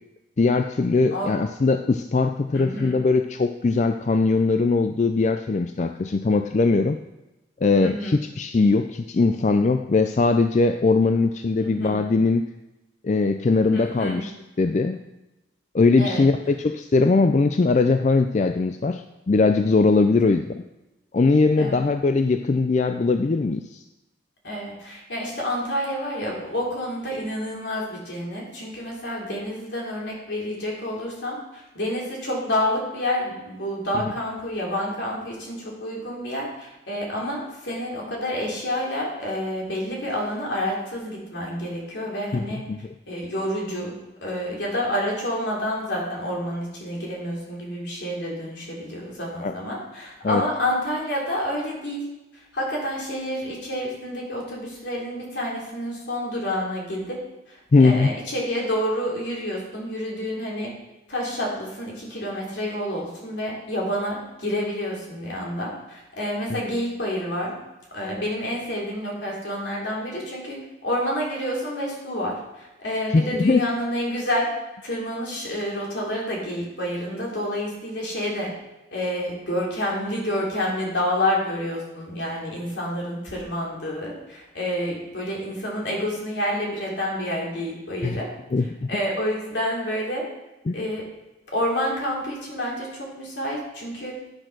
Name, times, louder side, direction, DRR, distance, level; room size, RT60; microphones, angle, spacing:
voice 1, 0.4-7.0 7.6-12.5 13.0-14.3 14.6-15.0 15.7-20.6 21.1-23.8 42.3-42.8 49.4-49.5 50.2-50.4 57.7-58.1 73.1-73.7 88.0-88.2 88.5-88.9 90.7-90.9, left 3 dB, 40° left, 7 dB, 0.4 m, -20 dB
voice 2, 2.5-3.0 7.8-8.1 11.6-12.0 13.7-14.2 16.0-16.3 21.6-21.8 24.4-42.7 43.1-43.9 44.2-52.1 52.5-57.2 57.5-60.7 61.1-67.5 67.9-74.5 74.8-78.5 78.9-88.3 88.9-90.2 90.7-91.1 91.5-94.2, equal, 75° left, -3 dB, 3.4 m, -29 dB
10.5 x 6.5 x 6.0 m, 0.99 s
head